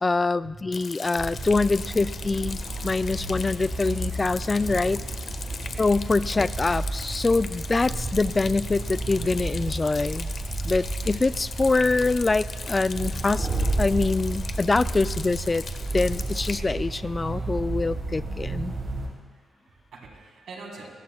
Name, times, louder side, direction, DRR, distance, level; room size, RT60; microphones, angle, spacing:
voice 1, 0.0-2.6 2.8-5.0 5.8-10.3 10.6-13.5 13.8-15.7 15.9-18.7, left 3 dB, 30° left, 16 dB, 0.4 m, -24 dB
Rain, 0.7-16.6, left 5 dB, 60° left, 1.1 m, -39 dB
sound 1, 1.2-19.1, right 2 dB, 50° right, 4.8 m, -32 dB
voice 2, 9.2-10.4 19.3-20.9, right 3 dB, 75° right, -2 dB, 4.2 m, -47 dB
24.5 x 19.0 x 2.4 m, 1.5 s
supercardioid pair, 55°, 0 cm